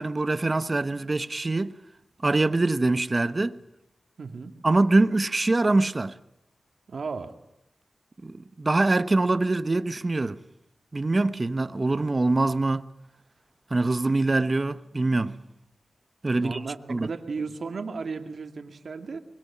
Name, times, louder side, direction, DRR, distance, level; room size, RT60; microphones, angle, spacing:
voice 1, 0.0-1.7 2.2-3.6 4.6-6.1 8.2-10.4 10.9-12.9 13.7-15.4 16.2-16.6 16.9-17.1, right 2 dB, 35° right, 1.1 m, -24 dB
voice 2, 4.2-4.5 6.9-7.3 16.3-19.2, right 4 dB, 75° right, 2.4 m, -35 dB
24.0 x 22.0 x 8.7 m
wide cardioid pair, 70°, 0 cm